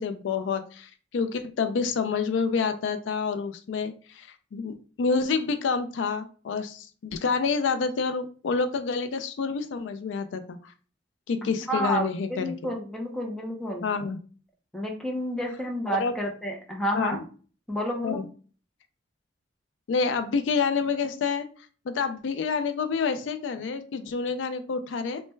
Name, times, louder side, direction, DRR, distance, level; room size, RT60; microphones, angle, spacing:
voice 1, 0.0-10.7 11.3-12.7 13.8-14.2 15.9-16.1 16.9-17.2 18.0-18.3 19.9-21.5 21.9-25.2, left 5 dB, 80° left, 9 dB, 0.4 m, -28 dB
voice 2, 11.7-13.9 14.7-17.2 17.7-18.2, equal, ahead, 0 dB, 0.6 m, -30 dB
3.2 x 2.1 x 3.1 m, 0.40 s
head